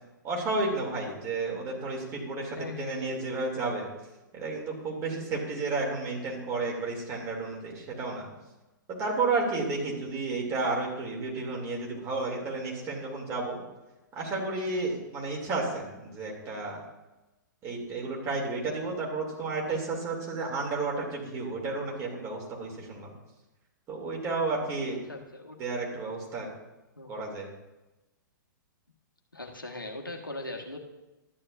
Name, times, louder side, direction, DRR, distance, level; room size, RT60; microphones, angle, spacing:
voice 1, 0.2-3.9 4.3-8.3 9.0-13.6 14.1-16.8 17.6-23.1 23.9-25.0 25.6-26.5 27.1-27.5, right 3 dB, 25° right, -1 dB, 2.8 m, -32 dB
voice 2, 2.6-3.3 25.1-25.6 27.0-27.3 29.3-30.8, left 2 dB, 90° left, 2 dB, 1.3 m, -40 dB
12.5 x 9.8 x 2.6 m, 1.0 s
figure-of-eight pair, 115°, 11 cm